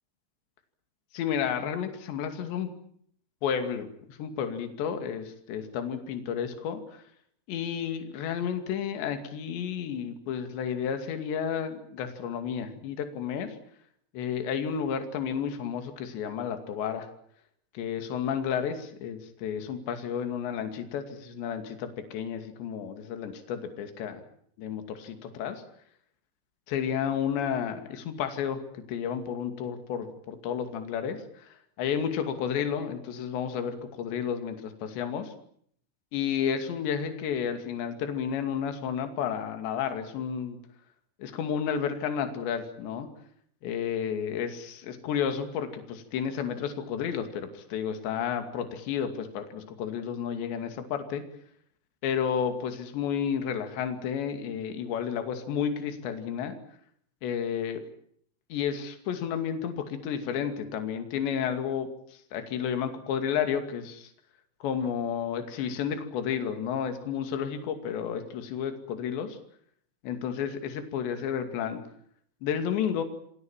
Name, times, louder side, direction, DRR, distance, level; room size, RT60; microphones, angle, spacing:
voice 1, 1.1-2.7 3.4-7.0 7.5-13.6 14.1-17.1 17.7-24.2 24.6-25.6 26.7-28.6 28.9-31.5 31.8-35.3 36.1-40.6 41.2-43.1 43.6-51.2 52.0-56.6 57.2-57.8 58.5-61.9 62.3-64.1 64.6-69.4 70.0-71.8 72.4-73.0, left 8 dB, 65° left, 7 dB, 4.5 m, -31 dB
27.5 x 22.0 x 7.4 m, 0.66 s
omnidirectional pair, 5.8 m